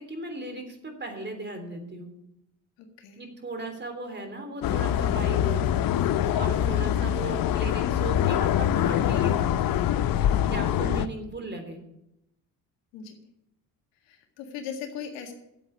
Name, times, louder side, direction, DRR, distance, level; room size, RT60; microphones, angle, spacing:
voice 1, 0.1-2.1 3.2-5.7 6.3-9.6 10.5-11.8, right 2 dB, 25° right, 5 dB, 3.3 m, -37 dB
sound 1, 4.6-11.1, left 10 dB, 50° left, 0.7 m, -24 dB
voice 2, 10.3-10.7 12.9-13.2 14.1-15.3, left 7 dB, 75° left, 4 dB, 1.9 m, -38 dB
8.7 x 8.1 x 8.8 m, 0.85 s
hypercardioid pair, 60°, 44 cm